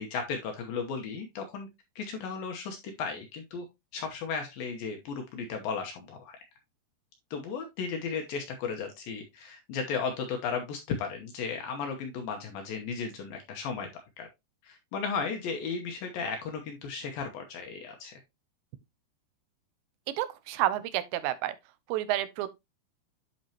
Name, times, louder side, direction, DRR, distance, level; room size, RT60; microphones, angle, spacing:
voice 1, 0.0-1.7 2.0-3.7 3.9-6.4 7.3-13.9 14.2-14.3 14.6-18.2, left 5 dB, 70° left, 2.4 m, -35 dB
voice 2, 20.2-21.6 21.9-22.5, right 14 dB, 85° right, 2.9 m, -30 dB
10.5 x 4.4 x 2.8 m
omnidirectional pair, 5.0 m